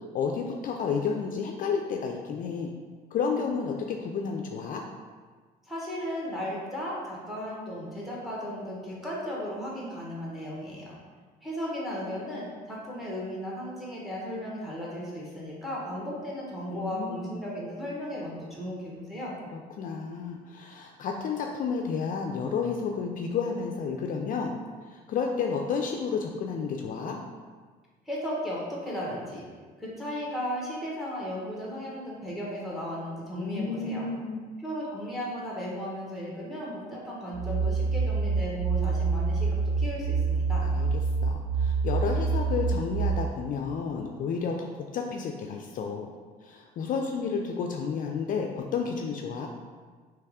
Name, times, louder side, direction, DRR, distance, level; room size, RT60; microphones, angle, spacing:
voice 1, 0.1-2.7 3.1-4.8 16.7-17.5 19.5-24.6 24.9-27.2 33.4-34.5 40.6-40.9 41.2-46.1 46.4-49.5, left 5 dB, 50° left, 2 dB, 0.4 m, -31 dB
voice 2, 5.6-11.0 11.4-19.4 28.0-29.5 29.8-34.1 34.6-40.7, equal, ahead, -5 dB, 1.4 m, -35 dB
sound 1, 37.3-43.1, right 4 dB, 40° right, 0.6 m, -27 dB
3.4 x 3.2 x 4.8 m, 1.5 s
cardioid pair, 110°, 17 cm